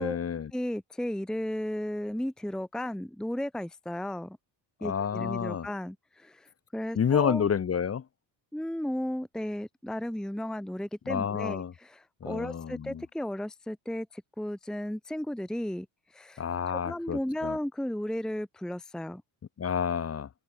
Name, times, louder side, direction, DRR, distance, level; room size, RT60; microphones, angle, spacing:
voice 1, 0.0-0.5 4.8-5.7 6.9-8.0 11.1-11.7 12.2-13.0 16.4-17.6 19.6-20.3, left 7 dB, 30° left, 1.5 m, -29 dB
voice 2, 0.5-4.4 4.8-7.5 8.5-15.9 16.1-16.4 16.7-19.2, left 1 dB, ahead, 1.0 m, -34 dB
cardioid pair, 125°, 50 cm